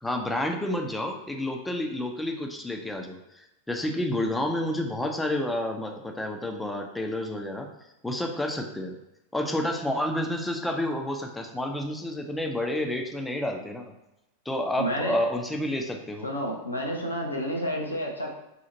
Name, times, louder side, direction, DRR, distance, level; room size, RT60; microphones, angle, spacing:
voice 1, 0.0-7.7 8.0-9.0 9.3-13.9 14.5-16.3, left 1 dB, 5° left, 3 dB, 0.5 m, -30 dB
voice 2, 14.8-15.2 16.2-18.3, equal, 80° left, -1 dB, 0.6 m, -30 dB
2.8 x 2.4 x 3.8 m, 0.93 s
figure-of-eight pair, 90°, 0 cm